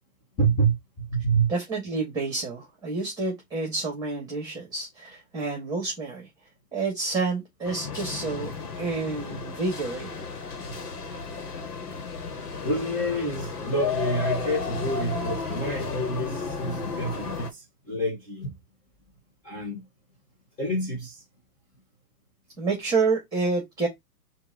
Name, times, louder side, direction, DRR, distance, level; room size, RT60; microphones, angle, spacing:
voice 1, 0.4-1.5 12.6-18.5 19.4-19.8 20.6-21.2, right 2 dB, 15° left, 1.5 m, -28 dB
voice 2, 1.5-6.3 6.7-8.5 8.8-10.3 22.6-23.9, right 3 dB, 10° right, 2.0 m, -29 dB
sound 1, 7.6-17.5, left 5 dB, 80° left, 1.5 m, -33 dB
4.6 x 2.8 x 4.0 m
hypercardioid pair, 145°, 46 cm